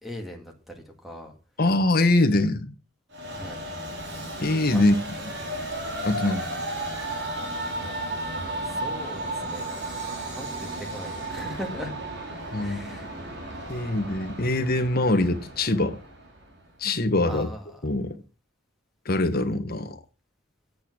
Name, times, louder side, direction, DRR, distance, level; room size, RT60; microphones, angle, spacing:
voice 1, 0.0-1.3 3.3-3.6 4.7-4.8 6.2-6.4 8.6-9.8 10.1-11.9 12.6-13.1 17.3-17.8, equal, ahead, 2.3 m, -39 dB
voice 2, 1.6-2.7 4.4-5.0 6.0-6.4 12.5-13.0 13.7-16.0 16.8-17.5 17.8-18.2 19.0-20.0, left 2 dB, 45° left, 1.4 m, -23 dB
Train, 3.1-16.6, right 1 dB, 55° right, 3.2 m, -34 dB
8.8 x 8.8 x 6.2 m
head